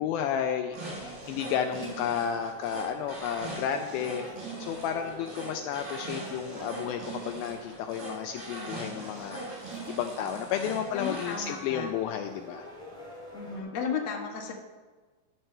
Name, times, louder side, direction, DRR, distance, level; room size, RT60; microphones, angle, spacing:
voice 1, 0.0-4.3 4.6-12.7, left 8 dB, 90° left, 6 dB, 2.1 m, -32 dB
sound 1, 0.7-13.6, left 1 dB, ahead, 1.5 m, -47 dB
sound 2, 0.7-11.5, right 3 dB, 75° right, 5.9 m, -41 dB
voice 2, 10.9-11.9 13.3-14.5, left 6 dB, 60° left, 0 dB, 1.7 m, -34 dB
12.5 x 4.5 x 6.6 m, 1.3 s
omnidirectional pair, 4.8 m